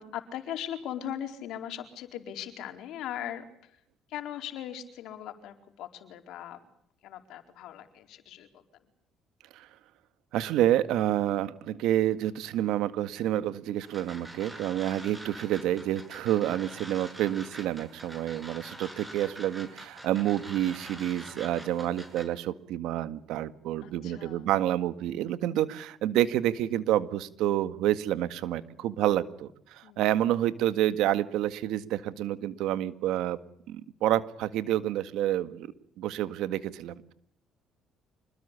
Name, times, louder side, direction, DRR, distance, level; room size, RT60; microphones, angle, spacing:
voice 1, 0.0-3.8 4.1-6.6 7.0-8.8 15.6-15.9 23.8-24.5 29.8-30.0, left 10 dB, 75° left, 7 dB, 4.4 m, -39 dB
voice 2, 10.3-33.4 33.7-37.1, right 12 dB, 80° right, 12 dB, 1.8 m, -28 dB
sound 1, 13.8-22.2, right 1 dB, 10° right, 7.6 m, -45 dB
27.0 x 21.0 x 8.3 m, 0.69 s
cardioid pair, 100°, 0 cm